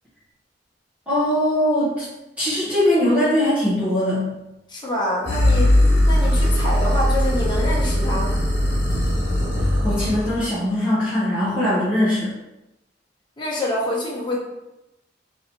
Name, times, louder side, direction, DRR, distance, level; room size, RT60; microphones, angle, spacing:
voice 1, 1.1-2.0 2.4-4.3 9.8-12.3, left 1 dB, 5° right, -10 dB, 0.9 m, -21 dB
voice 2, 4.7-5.8 6.0-8.3 13.4-14.4, left 1 dB, 25° left, -4 dB, 1.0 m, -26 dB
sound 1, 5.3-10.5, left 1 dB, 70° left, 1.4 m, -19 dB
3.2 x 2.8 x 4.2 m, 0.94 s
head